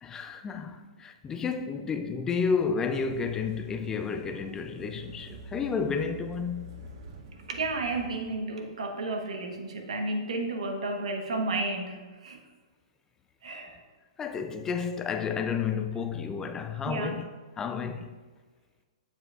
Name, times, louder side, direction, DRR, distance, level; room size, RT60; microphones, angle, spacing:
voice 1, 0.0-6.7 14.2-17.3 17.6-18.1, left 5 dB, 15° left, 0.3 m, -31 dB
sound 1, 3.0-8.4, right 2 dB, 50° right, 0.9 m, -46 dB
voice 2, 7.5-12.4 13.4-13.8 16.9-17.2, right 2 dB, 80° right, 1.1 m, -32 dB
8.0 x 7.2 x 2.4 m
hypercardioid pair, 140°, 4 cm